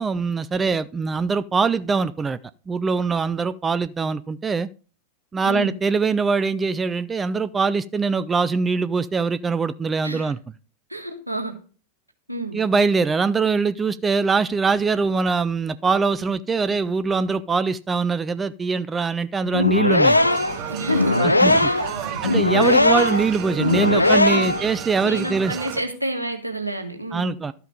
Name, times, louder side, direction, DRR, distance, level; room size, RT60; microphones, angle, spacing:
voice 1, 0.0-2.4 2.7-4.7 5.3-10.4 12.5-20.2 21.2-21.5 22.2-25.6 27.1-27.5, right 4 dB, 15° right, 0.5 m, -22 dB
voice 2, 5.4-5.7 10.0-10.3 10.9-11.5 12.3-12.6 20.7-22.2 24.3-24.6 25.0-27.4, right 1 dB, 85° right, 1.7 m, -30 dB
sound 1, 19.5-24.7, left 2 dB, 85° left, 0.4 m, -19 dB
sound 2, 20.1-25.8, right 9 dB, 40° right, 1.1 m, -32 dB
12.5 x 5.8 x 5.3 m
figure-of-eight pair, 90°, 0 cm